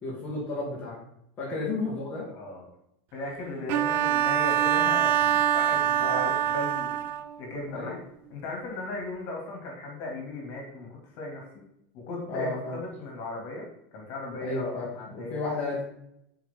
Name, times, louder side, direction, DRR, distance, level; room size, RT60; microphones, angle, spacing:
voice 1, 0.0-1.0 1.4-2.3 6.0-6.3 7.7-8.0 12.3-12.8 14.4-15.8, left 2 dB, 25° left, -5 dB, 2.0 m, -32 dB
voice 2, 2.3-2.7 3.1-7.0 7.4-8.0 8.3-11.5 11.9-13.7 13.9-15.4, left 2 dB, 40° left, -1 dB, 2.8 m, -37 dB
Bowed string instrument, 3.7-7.4, right 11 dB, 30° right, 0.4 m, -24 dB
14.5 x 5.1 x 3.8 m, 0.77 s
supercardioid pair, 180°, 6 cm